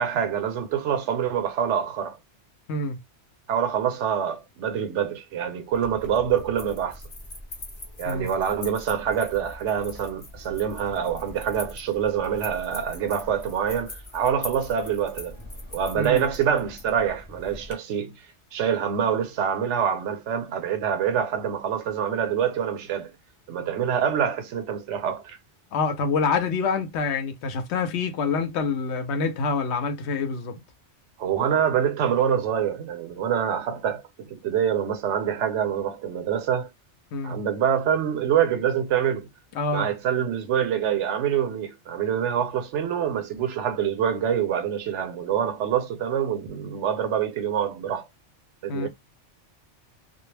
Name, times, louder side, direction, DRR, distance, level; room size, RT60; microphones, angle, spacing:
voice 1, 0.0-2.2 3.5-7.0 8.0-15.4 15.7-18.2 18.5-23.1 23.5-25.4 31.2-36.7 37.2-39.3 39.7-48.1 48.6-48.9, right 8 dB, 80° right, 0.9 m, -25 dB
sound 1, 5.7-17.7, left 1 dB, 30° left, 0.7 m, -42 dB
voice 2, 25.7-30.6 37.1-37.4 39.5-39.9 48.7-48.9, left 4 dB, 70° left, 0.8 m, -26 dB
2.3 x 2.0 x 3.2 m
omnidirectional pair, 1.2 m